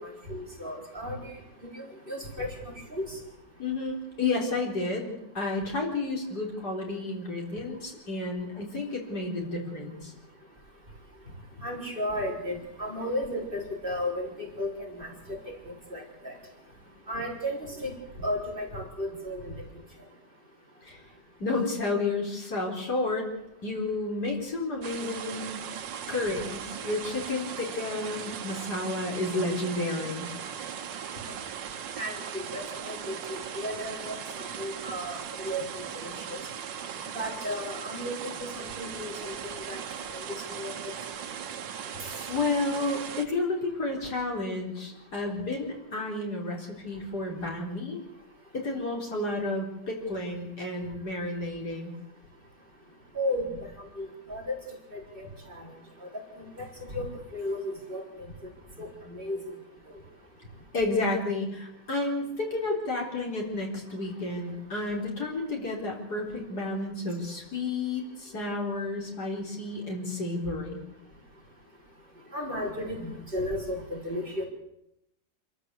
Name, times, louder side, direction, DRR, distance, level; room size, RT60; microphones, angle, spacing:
voice 1, 0.0-1.3 1.7-2.5 2.9-3.2 11.6-15.4 15.9-16.3 17.1-19.6 32.0-35.7 36.0-36.4 37.1-39.8 40.6-40.9 53.1-53.5 54.0-54.6 54.9-55.7 56.4-56.7 56.9-57.6 57.9-58.0 58.8-59.4 72.3-74.5, left 1 dB, 30° right, -1 dB, 4.6 m, -34 dB
voice 2, 3.6-10.1 20.8-21.0 21.4-23.3 23.6-25.6 26.1-30.3 42.0-48.0 48.5-51.9 60.7-70.8, left 2 dB, 60° left, 0 dB, 4.6 m, -31 dB
sound 1, 24.8-43.3, right 8 dB, 90° right, 1.8 m, -38 dB
27.5 x 13.5 x 8.2 m, 0.83 s
omnidirectional pair, 1.9 m